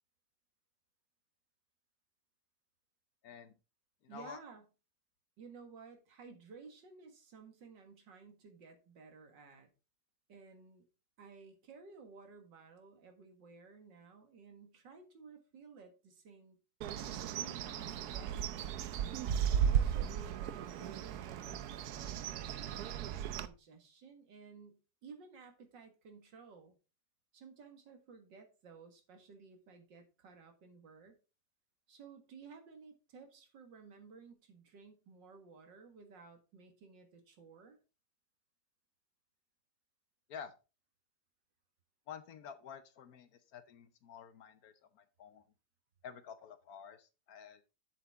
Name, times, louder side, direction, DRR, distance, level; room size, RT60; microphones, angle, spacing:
voice 1, 3.2-3.5 4.0-4.4 40.3-40.5 42.1-45.4 46.0-47.6, left 7 dB, 65° left, 11 dB, 1.1 m, -50 dB
voice 2, 4.1-4.6 5.4-9.7 10.3-10.8 11.2-16.6 17.3-18.6 19.2-26.7 27.3-31.2 31.9-37.8, right 5 dB, 85° right, 5 dB, 2.4 m, -55 dB
Bird, 16.8-23.5, right 9 dB, 70° right, 1.1 m, -35 dB
8.0 x 7.5 x 3.6 m, 0.31 s
omnidirectional pair, 1.9 m